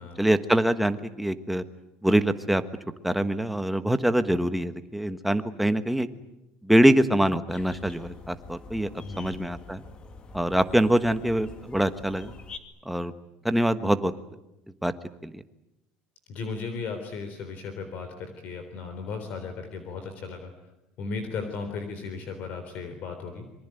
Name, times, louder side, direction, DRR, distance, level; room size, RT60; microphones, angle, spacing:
voice 1, 0.0-1.6 2.0-2.6 3.0-6.1 6.6-8.9 9.2-9.8 10.3-12.3 12.8-13.1 13.4-14.1 14.8-14.9 15.2-15.4, right 1 dB, ahead, 10 dB, 1.3 m, -24 dB
sound 1, 7.5-12.6, left 3 dB, 25° left, 2.4 m, -45 dB
voice 2, 9.0-9.4 16.3-20.5 21.0-23.5, left 4 dB, 45° left, 7 dB, 3.8 m, -36 dB
26.5 x 24.0 x 9.1 m, 0.91 s
cardioid pair, 155°, 4 cm